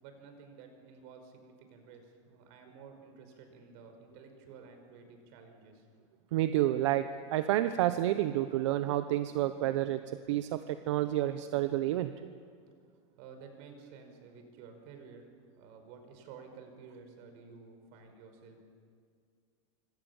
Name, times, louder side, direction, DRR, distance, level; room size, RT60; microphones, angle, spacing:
voice 1, 0.0-5.9 13.2-15.3 15.6-18.7, right 5 dB, 55° right, 5 dB, 5.5 m, -52 dB
voice 2, 6.3-7.1 7.3-10.0 10.3-12.1, right 14 dB, 80° right, 10 dB, 1.0 m, -29 dB
27.0 x 25.0 x 7.3 m, 2.1 s
supercardioid pair, 160°, 15 cm